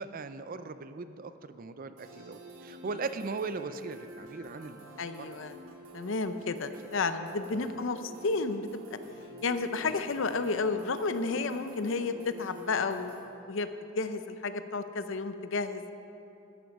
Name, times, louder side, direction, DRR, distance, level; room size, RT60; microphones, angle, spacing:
voice 1, 0.0-5.3 7.5-7.8, right 4 dB, 40° right, 11 dB, 0.4 m, -39 dB
sound 1, 2.0-13.3, right 2 dB, 90° right, 1.9 m, -49 dB
voice 2, 5.0-5.6 5.9-8.8 9.4-13.7 14.0-15.9, left 4 dB, 65° left, 10 dB, 0.6 m, -32 dB
13.0 x 11.0 x 5.3 m, 2.9 s
head